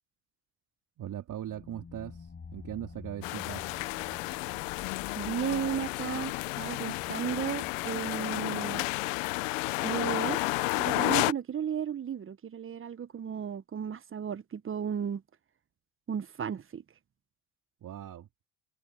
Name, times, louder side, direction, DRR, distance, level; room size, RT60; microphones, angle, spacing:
voice 1, 1.0-3.6 17.8-18.3, right 11 dB, 50° right, 3.6 m, -40 dB
sound 1, 1.4-9.9, left 5 dB, 30° left, 7.0 m, -50 dB
sound 2, 3.2-11.3, left 23 dB, 80° left, 1.0 m, -31 dB
voice 2, 5.1-8.8 9.8-10.4 10.8-15.2 16.1-16.8, right 8 dB, 35° right, 1.3 m, -34 dB
hypercardioid pair, 65°, 38 cm